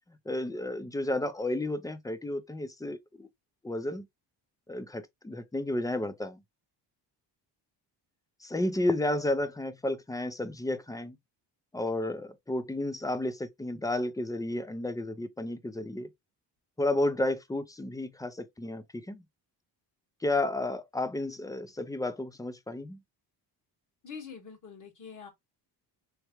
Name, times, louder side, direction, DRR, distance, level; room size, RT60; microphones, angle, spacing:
voice 1, 0.3-3.3 3.6-4.1 4.7-6.4 8.4-11.2 11.7-16.1 16.8-19.2 20.2-23.0, left 1 dB, 10° left, 0.4 m, -32 dB
voice 2, 24.0-25.3, left 6 dB, 45° left, 1.7 m, -44 dB
3.4 x 3.2 x 2.9 m
cardioid pair, 125°, 43 cm